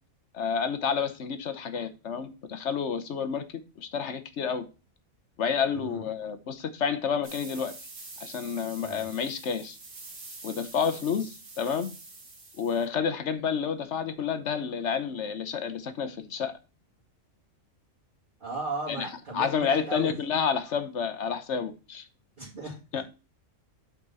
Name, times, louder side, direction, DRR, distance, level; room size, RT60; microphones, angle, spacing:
voice 1, 0.3-3.4 3.8-4.7 5.4-7.7 8.2-9.8 10.4-11.9 12.6-16.5 18.9-19.1 19.3-22.0 22.9-23.0, left 6 dB, 60° left, 1.1 m, -29 dB
voice 2, 5.7-6.1 8.8-9.1 18.4-20.4 22.4-23.0, right 3 dB, 40° right, 2.7 m, -37 dB
sound 1, 7.2-12.9, right 3 dB, 75° right, 2.3 m, -46 dB
8.4 x 4.4 x 4.1 m
omnidirectional pair, 1.4 m